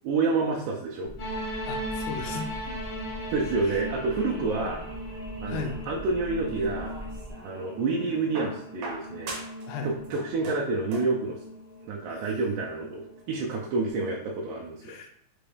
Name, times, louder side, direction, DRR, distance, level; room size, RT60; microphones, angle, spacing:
voice 1, 0.0-1.1 3.3-4.8 5.4-6.9 7.4-9.4 9.8-11.4 11.8-15.0, right 3 dB, 90° right, -3 dB, 2.1 m, -28 dB
sound 1, 1.0-7.3, equal, 35° left, 0.4 m, -42 dB
sound 2, 1.2-13.9, equal, 65° left, 1.1 m, -39 dB
voice 2, 1.7-2.8 3.6-3.8 4.3-4.8 5.5-5.8 9.7-9.9 12.1-12.2 14.8-15.1, left 5 dB, 85° left, 3 dB, 2.0 m, -37 dB
sound 3, 6.6-7.6 8.3-9.7 10.0-11.2 12.3-12.4, right 2 dB, 70° right, 1.5 m, -40 dB
6.0 x 2.3 x 3.3 m, 0.71 s
omnidirectional pair, 3.5 m